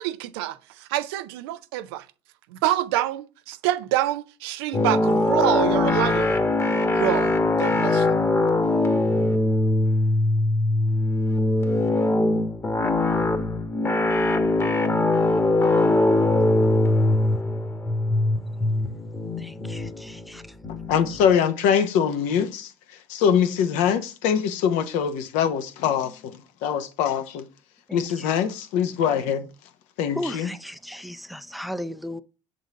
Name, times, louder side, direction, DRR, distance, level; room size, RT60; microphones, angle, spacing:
voice 1, 0.0-2.0 2.5-6.4 6.9-8.2, right 14 dB, 85° right, 0.5 m, -26 dB
sound 1, 4.7-21.3, left 2 dB, 20° left, 1.1 m, -22 dB
voice 2, 19.4-20.4 27.9-28.3 30.1-32.2, equal, ahead, 0.5 m, -35 dB
voice 3, 20.7-22.7 23.1-27.5 27.9-29.5 30.0-30.5, left 8 dB, 75° left, 0.9 m, -23 dB
6.8 x 3.9 x 3.7 m
supercardioid pair, 85°, 13 cm